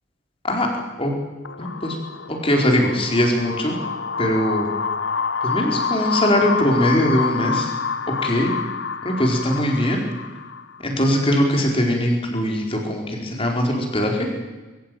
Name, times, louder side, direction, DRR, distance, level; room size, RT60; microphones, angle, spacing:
sound 1, 1.4-10.9, left 5 dB, 70° left, 0.9 m, -28 dB
voice 1, 1.6-2.0 2.3-3.8 4.2-4.7 5.4-7.7 8.2-8.5 9.0-10.0 10.8-14.3, equal, 30° left, 1 dB, 4.2 m, -21 dB
22.0 x 15.5 x 9.1 m, 1.2 s
head